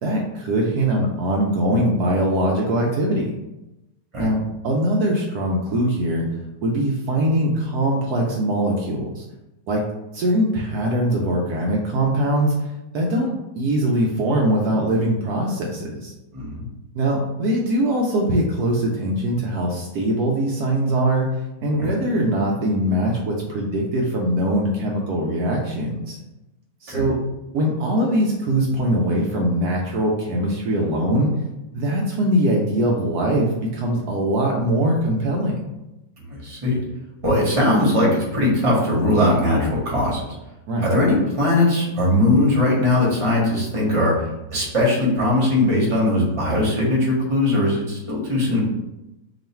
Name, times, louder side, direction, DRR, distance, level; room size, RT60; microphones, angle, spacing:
voice 1, 0.0-3.3 4.2-6.3 6.6-9.2 9.7-9.8 10.1-12.5 12.9-16.1 16.9-21.3 21.6-26.2 26.8-27.2 27.5-31.3 31.7-35.6 40.7-40.9, right 1 dB, 70° right, -1 dB, 1.0 m, -22 dB
voice 2, 16.3-16.7 21.8-21.9 26.9-27.1 36.2-36.8 37.2-40.2 40.8-48.6, left 1 dB, 25° right, -4 dB, 0.9 m, -20 dB
3.0 x 2.4 x 4.2 m, 0.95 s
omnidirectional pair, 1.8 m